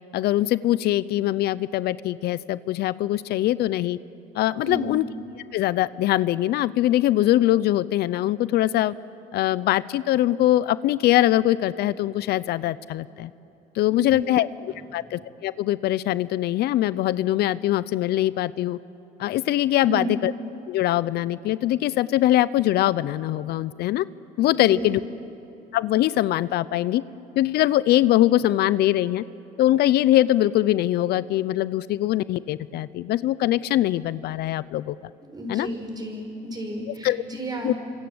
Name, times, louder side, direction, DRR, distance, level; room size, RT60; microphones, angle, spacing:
voice 1, 0.1-4.0 4.3-5.0 5.5-8.9 9.3-13.3 13.7-18.8 19.2-20.3 20.7-24.0 24.4-25.0 25.7-27.0 27.4-29.2 29.6-35.0 35.5-35.7 36.9-37.2 37.6-37.7, left 14 dB, 75° left, 18 dB, 0.6 m, -22 dB
voice 2, 4.6-4.9 13.9-14.0 19.8-20.2 24.5-24.8 35.3-37.8, right 1 dB, 25° right, 3 dB, 5.8 m, -32 dB
28.0 x 26.0 x 7.9 m, 2.8 s
cardioid pair, 110°, 17 cm